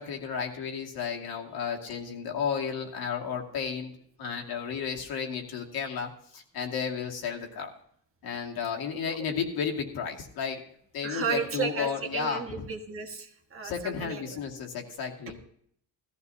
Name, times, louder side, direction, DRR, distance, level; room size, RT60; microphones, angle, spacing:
voice 1, 0.0-3.9 4.2-7.7 8.2-10.6 10.9-12.6 13.6-15.4, left 6 dB, 65° left, 0 dB, 2.4 m, -33 dB
voice 2, 11.0-14.4, right 5 dB, 35° right, 3 dB, 1.6 m, -34 dB
17.0 x 14.5 x 2.8 m, 0.65 s
cardioid pair, 135°, 39 cm